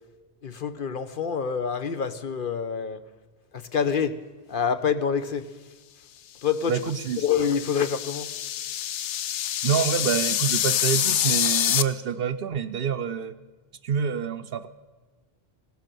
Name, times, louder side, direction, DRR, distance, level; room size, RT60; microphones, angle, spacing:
voice 1, 0.4-3.0 3.5-4.2 4.5-5.5 6.4-6.8 7.2-8.3, left 7 dB, 55° left, 11 dB, 0.8 m, -26 dB
sound 1, 6.7-11.8, left 11 dB, 85° left, 0.9 m, -26 dB
voice 2, 6.7-7.2 9.6-13.3 13.8-14.7, right 7 dB, 60° right, 11 dB, 0.8 m, -27 dB
17.0 x 11.5 x 6.7 m, 1.4 s
omnidirectional pair, 1.2 m